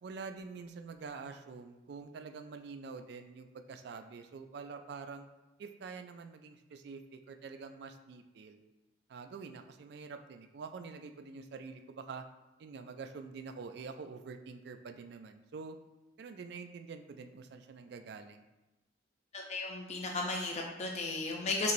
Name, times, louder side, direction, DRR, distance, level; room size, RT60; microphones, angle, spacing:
voice 1, 0.0-5.3 5.6-8.6 9.1-12.2 12.6-15.8 16.2-18.4, right 5 dB, 60° right, 7 dB, 0.3 m, -46 dB
voice 2, 19.3-21.7, left 3 dB, 35° left, 0 dB, 0.4 m, -35 dB
5.4 x 3.0 x 2.6 m, 1.0 s
head